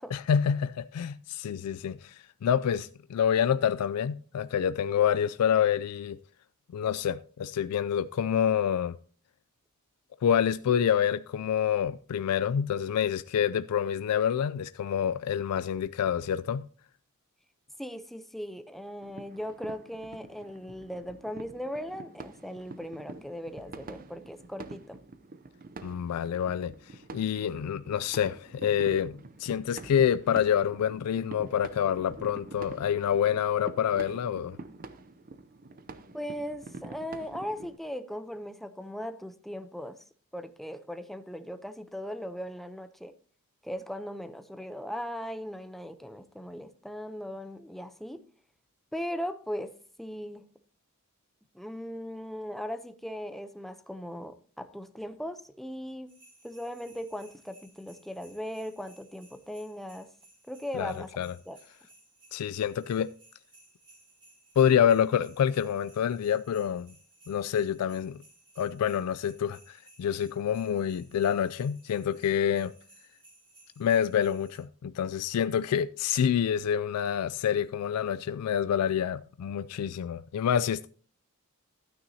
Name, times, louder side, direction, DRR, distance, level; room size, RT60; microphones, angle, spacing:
voice 1, 0.1-6.2 6.7-8.9 10.2-16.6 25.8-34.6 60.7-61.3 62.3-63.1 64.6-66.9 67.3-68.2 68.6-72.7 73.8-80.9, left 8 dB, 85° left, 0.3 m, -27 dB
voice 2, 17.8-25.0 36.1-40.0 40.3-43.1 43.6-48.2 48.9-50.4 51.5-56.1 56.4-60.1 60.5-61.1 61.5-61.6, equal, ahead, 0.6 m, -38 dB
sound 1, 19.0-37.8, right 3 dB, 40° right, 0.6 m, -47 dB
sound 2, 56.1-74.6, right 2 dB, 20° right, 5.4 m, -59 dB
12.5 x 9.0 x 2.8 m
head